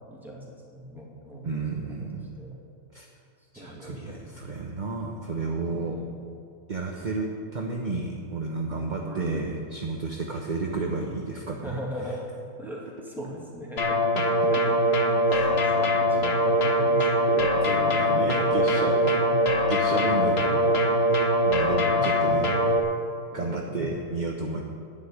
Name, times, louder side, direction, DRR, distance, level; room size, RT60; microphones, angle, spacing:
voice 1, 0.0-1.8 2.4-2.6 3.6-4.3 5.7-6.1 8.7-9.5 11.6-12.3 12.6-14.0 14.5-17.5 17.9-19.5 20.0-20.6 21.7-22.8 23.3-24.1, equal, ahead, -4 dB, 2.4 m, -39 dB
voice 2, 1.4-2.3 2.9-3.1 3.5-6.0 6.7-11.8 15.3-15.6 17.3-19.0 19.7-22.8 23.3-24.6, right 3 dB, 35° right, 0 dB, 0.9 m, -32 dB
sound 1, 13.8-22.8, equal, 40° left, 1.1 m, -22 dB
10.0 x 8.1 x 9.6 m, 2.5 s
omnidirectional pair, 2.0 m